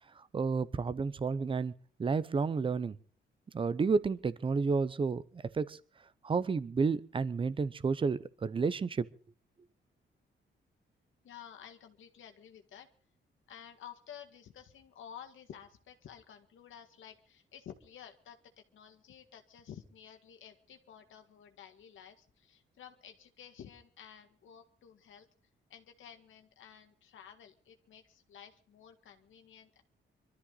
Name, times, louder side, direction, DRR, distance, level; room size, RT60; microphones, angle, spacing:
voice 1, 0.1-1.7 2.0-3.0 3.5-5.8 6.2-9.1, right 4 dB, 25° right, 0.9 m, -31 dB
voice 2, 11.2-12.9 13.5-18.4 18.7-25.3 25.7-29.8, left 9 dB, 80° left, 1.9 m, -52 dB
25.5 x 13.0 x 4.0 m
wide cardioid pair, 175°, 20 cm